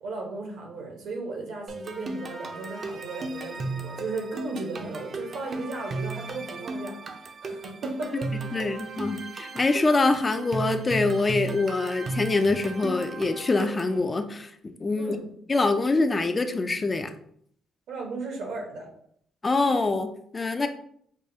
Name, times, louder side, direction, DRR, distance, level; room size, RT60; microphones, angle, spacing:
voice 1, 0.0-8.6 15.0-15.3 17.9-18.9 20.6-20.7, right 3 dB, 75° right, 1 dB, 1.0 m, -36 dB
sound 1, 1.7-14.0, right 2 dB, 40° right, 0.5 m, -35 dB
voice 2, 8.5-15.2 15.5-17.1 19.4-20.7, left 3 dB, 25° left, 8 dB, 0.3 m, -25 dB
4.8 x 2.3 x 2.7 m, 0.65 s
cardioid pair, 130°, 0 cm